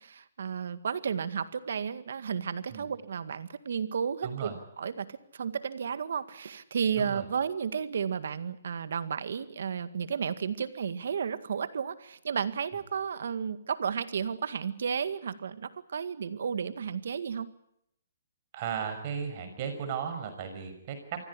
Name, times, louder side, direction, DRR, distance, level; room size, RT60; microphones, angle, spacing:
voice 1, 0.0-4.5 4.8-17.5, right 7 dB, 70° right, 12 dB, 1.9 m, -33 dB
voice 2, 4.2-4.5 7.0-7.2 18.5-21.0, right 7 dB, 40° right, 7 dB, 5.8 m, -35 dB
24.0 x 16.0 x 10.0 m, 0.77 s
hypercardioid pair, 150°, 0 cm